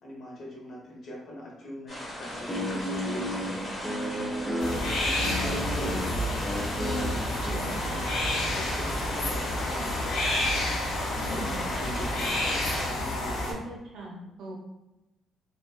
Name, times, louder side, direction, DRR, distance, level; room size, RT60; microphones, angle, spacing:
voice 1, 0.0-3.5 4.8-6.5 7.1-8.1 8.5-10.2 11.2-13.5, left 1 dB, 65° left, -3 dB, 0.9 m, -41 dB
sound 1, 1.9-12.9, left 1 dB, 35° left, 1.1 m, -37 dB
Guitar, 2.3-7.6, equal, 5° left, 0.5 m, -33 dB
sound 2, 4.6-13.5, left 1 dB, 90° left, 0.5 m, -30 dB
voice 2, 7.4-7.9 11.1-11.7 13.5-14.5, right 1 dB, 75° right, -2 dB, 0.7 m, -41 dB
2.8 x 2.1 x 2.2 m, 0.99 s
cardioid pair, 90°, 0 cm